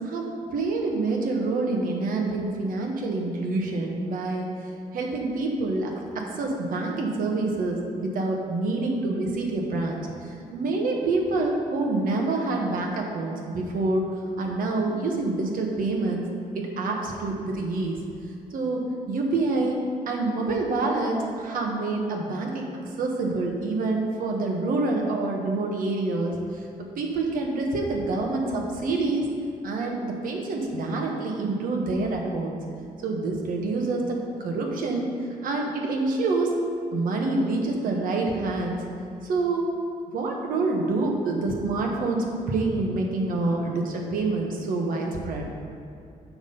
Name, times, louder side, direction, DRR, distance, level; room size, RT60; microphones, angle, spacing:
voice 1, 0.0-4.5 4.9-14.1 14.4-16.3 16.5-18.0 18.5-19.8 20.1-29.3 29.6-32.6 33.0-35.1 35.4-36.5 36.9-38.9 39.2-39.6 40.1-45.5, right 3 dB, 80° right, 0 dB, 1.3 m, -27 dB
7.3 x 6.1 x 5.4 m, 2.5 s
cardioid pair, 105°, 14 cm